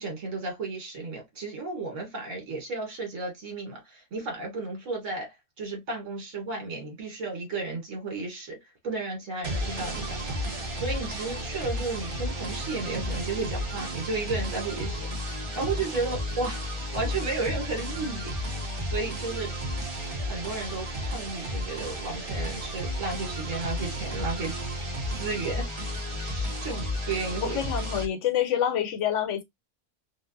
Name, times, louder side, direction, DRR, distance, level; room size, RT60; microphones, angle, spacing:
voice 1, 0.0-8.6 8.8-10.4 10.7-16.6 16.9-18.3 18.9-19.6 20.2-24.6 25.1-25.7 26.2-27.6, right 3 dB, 75° right, 1.7 m, -33 dB
sound 1, 9.4-28.1, equal, 35° right, 0.7 m, -33 dB
voice 2, 27.4-29.4, left 10 dB, 75° left, 1.0 m, -27 dB
3.7 x 2.1 x 2.6 m
omnidirectional pair, 1.3 m